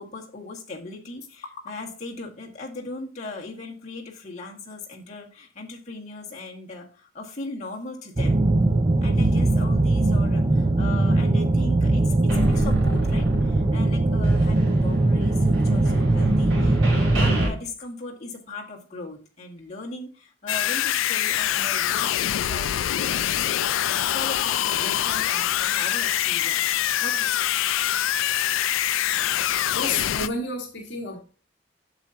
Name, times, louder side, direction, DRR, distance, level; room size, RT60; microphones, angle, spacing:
voice 1, 0.0-8.5 9.0-26.7 27.0-27.5, left 2 dB, 35° left, 1.9 m, -38 dB
sound 1, 8.2-17.5, right 2 dB, 25° right, 0.5 m, -20 dB
sound 2, 12.3-14.0 14.2-17.5, equal, 85° right, 4.3 m, -30 dB
sound 3, 20.5-30.3, left 12 dB, 80° left, 0.4 m, -24 dB
voice 2, 29.7-31.2, left 2 dB, 60° left, 1.6 m, -30 dB
8.1 x 6.6 x 2.8 m
head